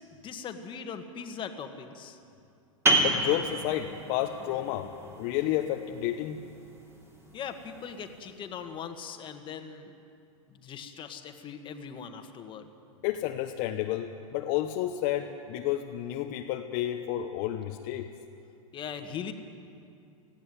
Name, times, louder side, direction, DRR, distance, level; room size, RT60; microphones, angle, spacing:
voice 1, 0.2-2.2 7.3-9.9 10.5-12.7 18.7-19.3, left 7 dB, 30° left, 6 dB, 1.7 m, -40 dB
sound 1, 2.9-8.2, right 2 dB, 15° right, 3.1 m, -31 dB
voice 2, 3.0-4.9 5.2-6.4 13.0-18.1, left 12 dB, 50° left, 3 dB, 1.1 m, -31 dB
19.0 x 15.0 x 9.4 m, 2.5 s
hypercardioid pair, 120°, 18 cm